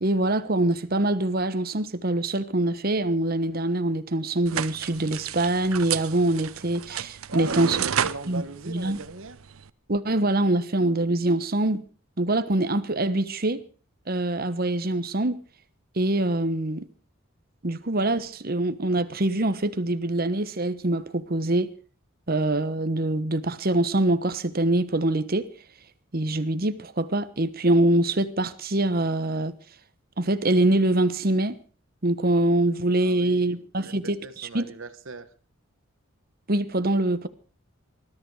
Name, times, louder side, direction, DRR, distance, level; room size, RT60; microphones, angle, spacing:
voice 1, 0.0-7.8 8.3-9.0 9.9-11.8 12.2-13.6 14.1-15.4 16.0-16.9 17.6-21.7 22.3-25.5 26.1-29.6 30.2-31.6 32.0-34.7 36.5-37.3, right 1 dB, 45° right, 1.2 m, -24 dB
sound 1, 4.5-9.7, right 8 dB, 85° right, 0.8 m, -32 dB
voice 2, 7.3-9.4 33.0-35.3, right 3 dB, 65° right, 1.2 m, -38 dB
20.0 x 13.0 x 4.8 m
head